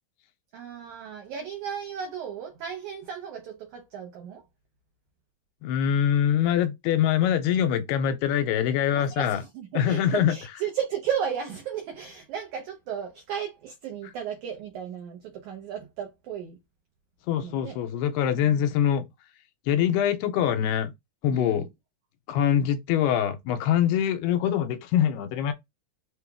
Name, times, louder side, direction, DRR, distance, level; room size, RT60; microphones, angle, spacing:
voice 1, 0.5-4.4 8.9-16.6 17.4-17.8 18.3-18.5 21.3-21.7, right 8 dB, 85° right, 1.7 m, -34 dB
voice 2, 5.6-9.4 9.7-10.3 17.3-19.1 19.7-20.9 21.2-21.7 22.3-25.5, left 9 dB, 85° left, 2.6 m, -24 dB
6.5 x 2.3 x 3.4 m
omnidirectional pair, 4.6 m